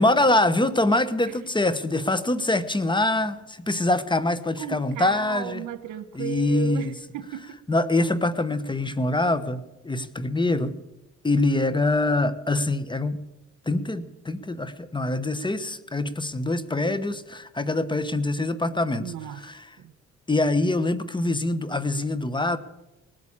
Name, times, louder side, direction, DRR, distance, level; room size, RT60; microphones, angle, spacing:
voice 1, 0.0-5.6 6.1-6.9 7.7-10.8 11.2-13.2 13.7-19.6 20.3-22.6, left 2 dB, 15° left, 13 dB, 1.0 m, -24 dB
voice 2, 4.6-7.6 19.0-19.4 19.8-19.9, right 12 dB, 80° right, 13 dB, 1.1 m, -35 dB
19.0 x 8.4 x 8.8 m, 0.96 s
cardioid pair, 90°, 30 cm